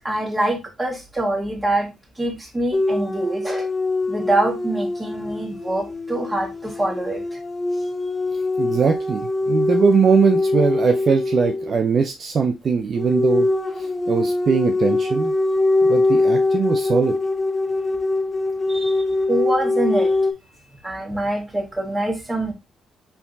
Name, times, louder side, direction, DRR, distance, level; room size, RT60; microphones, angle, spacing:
voice 1, 0.0-3.7 4.1-7.2 18.7-20.2 20.8-22.5, right 1 dB, 15° right, 2 dB, 1.5 m, -25 dB
sound 1, 2.7-11.8 12.9-20.3, left 2 dB, 25° left, 0.5 m, -22 dB
voice 2, 8.6-13.5 13.8-15.3 15.8-17.1, right 6 dB, 50° right, 4 dB, 0.5 m, -21 dB
4.5 x 3.5 x 2.6 m, 0.25 s
cardioid pair, 90°, 0 cm